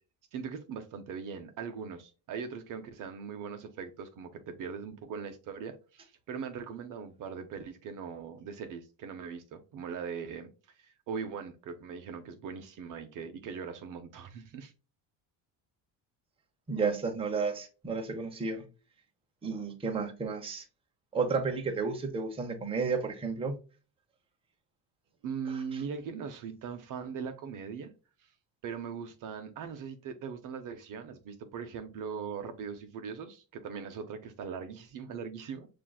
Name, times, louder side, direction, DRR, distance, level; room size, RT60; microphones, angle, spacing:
voice 1, 0.3-10.5 10.7-14.7 25.2-27.9 28.2-28.3 28.6-35.7, right 6 dB, 50° right, 0.6 m, -40 dB
voice 2, 16.7-18.6 19.4-20.6 21.1-23.6 25.5-25.8, right 4 dB, 15° right, 0.7 m, -32 dB
7.2 x 2.5 x 2.3 m
cardioid pair, 145°, 42 cm